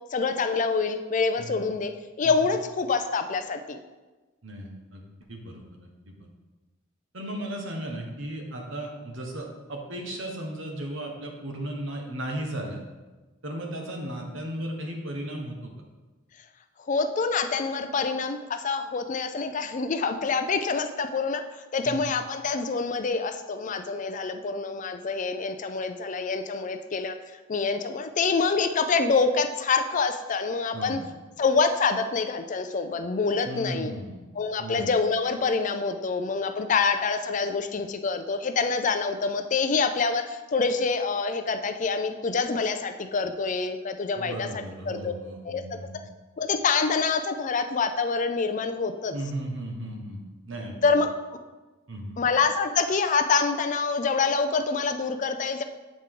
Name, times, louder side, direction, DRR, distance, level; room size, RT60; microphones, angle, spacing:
voice 1, 0.1-1.9 2.2-3.8 16.8-27.2 27.5-31.0 31.4-33.9 34.3-45.1 45.4-45.6 46.4-49.1 50.8-51.1 52.2-55.6, left 4 dB, 40° left, 8 dB, 0.4 m, -26 dB
voice 2, 4.4-5.0 5.3-6.1 7.1-12.8 13.4-15.7 21.8-22.0 30.7-31.0 33.4-34.2 34.6-34.9 44.1-46.0 49.1-50.2 50.5-50.8 51.9-52.2, right 1 dB, 80° right, 2 dB, 1.3 m, -35 dB
8.1 x 5.1 x 3.8 m, 1.2 s
head